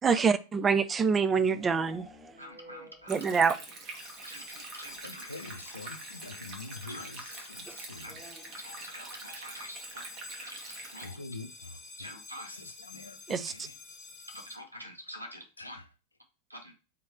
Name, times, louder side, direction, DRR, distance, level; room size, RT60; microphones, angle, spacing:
voice 1, 0.0-2.1 3.1-3.6 7.7-7.8 13.3-13.5, right 5 dB, 20° right, 0.4 m, -25 dB
sound 1, 0.8-3.8 4.1-4.2 4.5-4.6 4.9-5.0 6.2-6.3 8.0-8.9, equal, ahead, 1.1 m, -53 dB
voice 2, 2.4-3.3 4.2-5.3 6.8-7.1 8.0-8.1 8.5-10.1 10.4-11.2 12.0-12.5 14.3-15.8 16.5-16.7, equal, 85° right, 1.1 m, -46 dB
Stream, 3.1-11.1, right 3 dB, 35° right, 1.4 m, -45 dB
sound 2, 3.9-14.6, left 4 dB, 25° left, 1.5 m, -49 dB
voice 3, 5.0-8.2 11.0-12.1 12.4-13.8 15.6-15.8, left 2 dB, 80° left, 0.6 m, -45 dB
3.7 x 3.1 x 4.3 m
figure-of-eight pair, 90°, 0 cm